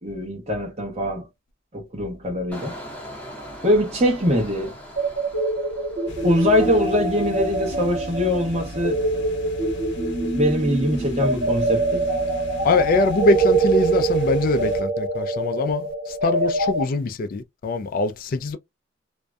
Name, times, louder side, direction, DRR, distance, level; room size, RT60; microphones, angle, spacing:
voice 1, 0.0-1.3 1.7-2.7 3.6-4.8 6.2-9.0 10.3-12.1, left 1 dB, 35° right, 0.9 m, -22 dB
Engine, 2.5-7.2 7.5-7.9, equal, 10° left, 0.7 m, -40 dB
sound 1, 5.0-16.8, right 3 dB, 80° right, 1.3 m, -24 dB
sound 2, 6.1-14.8, left 1 dB, 70° left, 0.8 m, -38 dB
voice 2, 12.6-18.6, left 3 dB, 50° left, 0.3 m, -23 dB
2.5 x 2.1 x 2.2 m
head